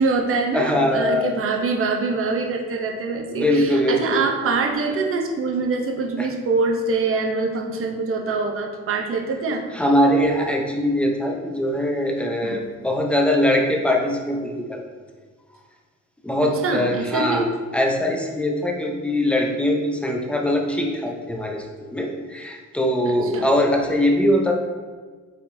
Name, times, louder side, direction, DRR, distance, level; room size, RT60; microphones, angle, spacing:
voice 1, 0.0-9.6 12.4-12.6 16.6-17.5 23.1-23.5, right 4 dB, 45° right, 2 dB, 0.7 m, -24 dB
voice 2, 0.5-1.3 3.3-4.3 6.2-6.3 9.7-14.8 16.2-17.5 17.7-24.5, left 1 dB, 5° left, 1 dB, 0.6 m, -22 dB
4.3 x 3.9 x 2.6 m, 1.4 s
cardioid pair, 90°, 30 cm